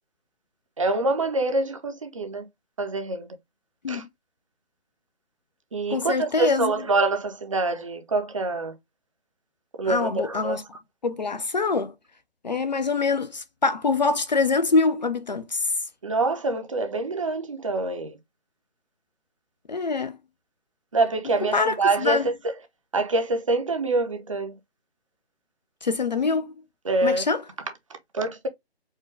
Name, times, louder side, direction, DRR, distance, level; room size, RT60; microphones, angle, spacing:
voice 1, 0.8-2.5 2.8-3.3 3.9-4.0 5.7-8.8 9.8-10.6 16.0-18.2 20.9-22.3 22.9-24.5 26.8-27.2 28.1-28.5, right 3 dB, 30° right, 0.6 m, -25 dB
voice 2, 5.9-6.7 9.8-10.6 11.0-11.9 12.4-15.7 19.7-20.2 21.5-22.2 25.8-26.5 27.0-27.4, left 4 dB, 45° left, 0.5 m, -24 dB
4.5 x 2.2 x 3.2 m
figure-of-eight pair, 150°, 32 cm